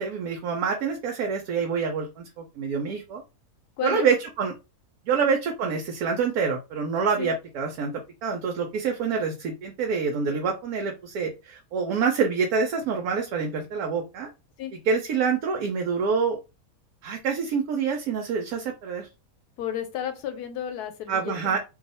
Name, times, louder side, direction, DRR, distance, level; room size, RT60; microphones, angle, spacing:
voice 1, 0.0-3.2 3.8-4.5 5.1-7.9 8.2-14.3 14.9-16.4 17.0-19.1 21.1-21.6, right 5 dB, 75° right, 1.0 m, -26 dB
voice 2, 3.8-4.1 5.1-5.2 7.2-7.3 14.6-14.7 19.6-21.6, left 10 dB, 80° left, 1.1 m, -32 dB
2.6 x 2.3 x 4.0 m
omnidirectional pair, 1.7 m